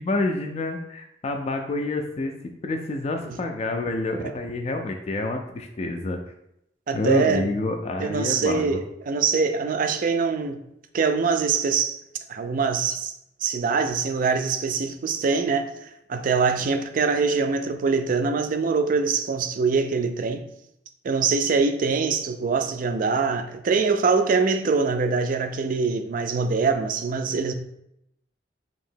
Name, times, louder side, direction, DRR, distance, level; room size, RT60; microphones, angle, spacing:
voice 1, 0.0-6.2 6.9-8.8, left 2 dB, 35° left, 0.3 m, -28 dB
voice 2, 6.9-7.5 8.0-10.6 10.9-12.0 12.3-13.1 13.4-20.4 21.0-27.5, right 5 dB, 50° right, 0.4 m, -23 dB
2.9 x 2.8 x 4.3 m
head